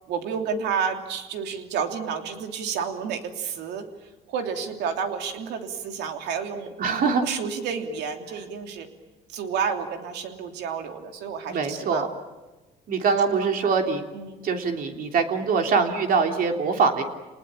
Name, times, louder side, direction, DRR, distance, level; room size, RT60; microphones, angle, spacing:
voice 1, 0.1-3.8 4.3-6.7 7.2-8.9 9.3-12.0 13.3-13.7 14.1-14.5, right 6 dB, 80° right, 5 dB, 3.1 m, -30 dB
voice 2, 6.8-7.2 11.5-12.1 12.9-14.0 14.4-17.0, right 5 dB, 55° right, 4 dB, 3.3 m, -23 dB
29.0 x 20.0 x 9.0 m, 1.1 s
cardioid pair, 110°, 17 cm